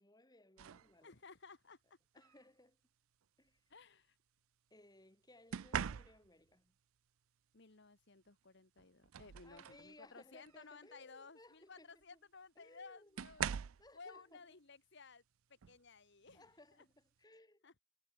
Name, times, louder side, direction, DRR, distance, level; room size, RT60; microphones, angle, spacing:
voice 1, 0.0-1.1 2.1-2.8 3.4-3.6 4.7-6.8 9.4-12.2 12.6-14.5 16.3-17.8, left 1 dB, 20° left, 2.7 m, -63 dB
sound 1, 0.6-0.9 2.2-2.4 5.5-6.5 8.3-8.4 8.8-9.9 10.4-10.6 12.0-12.1 13.2-13.9 15.6-15.8 16.3-16.6, right 8 dB, 80° right, 0.5 m, -42 dB
voice 2, 1.0-1.8 3.7-4.2 7.5-13.5 13.9-15.2 15.5-16.5 17.6-17.8, left 4 dB, 55° left, 1.4 m, -57 dB
head